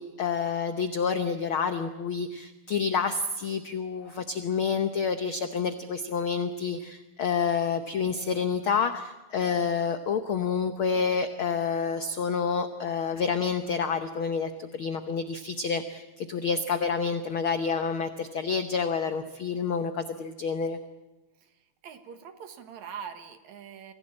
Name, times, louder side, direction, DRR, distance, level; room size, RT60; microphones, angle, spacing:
voice 1, 0.0-20.8, left 6 dB, 80° left, 9 dB, 1.1 m, -28 dB
voice 2, 21.8-23.9, right 7 dB, 65° right, 8 dB, 2.6 m, -42 dB
24.5 x 16.0 x 8.6 m, 1.1 s
omnidirectional pair, 3.7 m